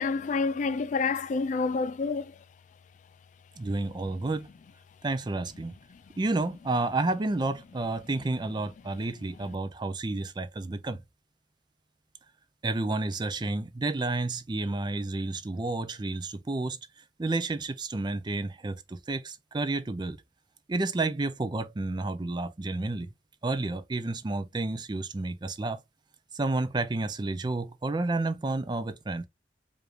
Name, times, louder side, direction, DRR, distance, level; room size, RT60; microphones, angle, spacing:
voice 1, 0.0-2.3, left 4 dB, 45° left, 0.3 m, -28 dB
voice 2, 3.6-4.5 5.0-5.8 6.2-11.0 12.6-16.8 17.2-20.2 20.7-23.1 23.4-25.8 26.3-29.3, right 2 dB, 25° right, 0.4 m, -30 dB
4.8 x 2.5 x 3.1 m
head